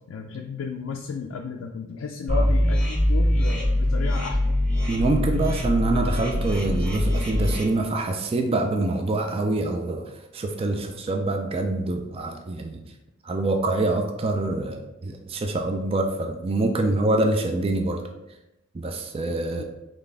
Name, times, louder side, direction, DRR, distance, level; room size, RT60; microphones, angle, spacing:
voice 1, 0.1-4.6 19.6-19.7, left 5 dB, 85° left, 1 dB, 0.4 m, -33 dB
sound 1, 2.3-7.6, left 1 dB, 5° left, 0.9 m, -23 dB
voice 2, 4.9-12.8 13.2-18.0 18.7-19.6, right 2 dB, 30° right, 4 dB, 0.3 m, -25 dB
4.1 x 3.3 x 3.3 m, 0.94 s
head